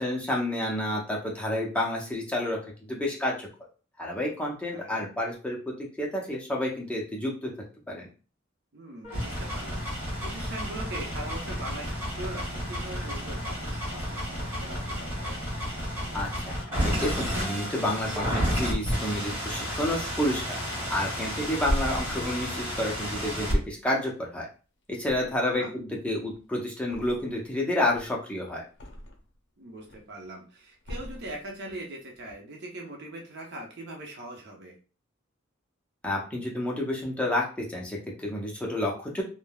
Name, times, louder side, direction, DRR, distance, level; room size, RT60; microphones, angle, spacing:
voice 1, 0.0-3.5 4.0-7.5 7.9-8.0 16.1-16.5 16.8-20.6 20.9-24.5 25.0-28.6 36.0-39.2, left 1 dB, 5° left, -3 dB, 0.6 m, -30 dB
voice 2, 4.7-5.1 8.7-15.4 25.4-25.7 29.6-34.7, right 1 dB, 60° right, 1 dB, 0.7 m, -41 dB
sound 1, 9.0-23.6, equal, 15° right, 1.4 m, -31 dB
Thump thud, 21.2-24.5 24.9-25.7 26.0-27.5 27.8-29.4 29.7-30.3 30.8-31.8 32.1-32.3, equal, 60° left, 0.6 m, -38 dB
3.3 x 2.1 x 2.2 m, 0.35 s
head